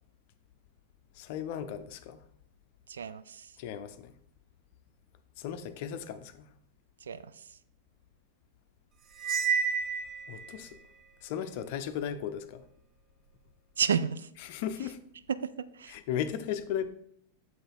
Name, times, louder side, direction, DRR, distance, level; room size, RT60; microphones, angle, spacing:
voice 1, 1.1-2.2 3.6-4.1 5.4-6.5 10.3-10.8 11.2-12.6 14.4-15.0 15.9-16.9, left 9 dB, 50° left, 10 dB, 0.5 m, -36 dB
voice 2, 2.9-3.5 7.0-7.5 13.8-14.3 15.4-16.0, right 7 dB, 65° right, 15 dB, 0.3 m, -32 dB
Cymbal, 9.2-10.6, right 6 dB, 35° right, 0.7 m, -30 dB
7.5 x 3.9 x 4.1 m, 0.68 s
figure-of-eight pair, 90°, 0 cm